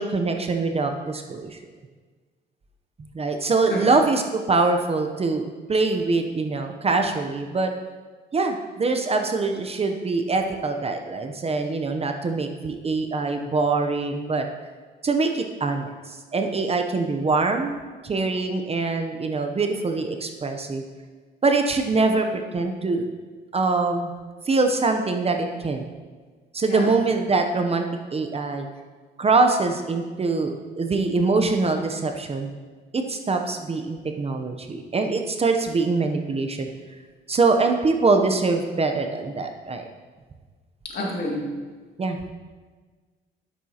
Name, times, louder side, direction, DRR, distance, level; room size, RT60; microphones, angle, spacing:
voice 1, 0.0-1.6 3.0-7.7 8.3-14.5 15.0-20.8 21.4-23.1 23.5-24.1 24.5-25.9 26.5-27.9 28.1-28.7 29.2-32.5 32.9-36.7 37.3-39.8 42.0-42.2, right 3 dB, 30° right, 5 dB, 0.7 m, -23 dB
voice 2, 3.7-4.0 26.6-26.9 40.8-41.4, left 1 dB, 55° left, -3 dB, 2.3 m, -29 dB
9.8 x 7.7 x 2.8 m, 1.4 s
cardioid pair, 90°, 20 cm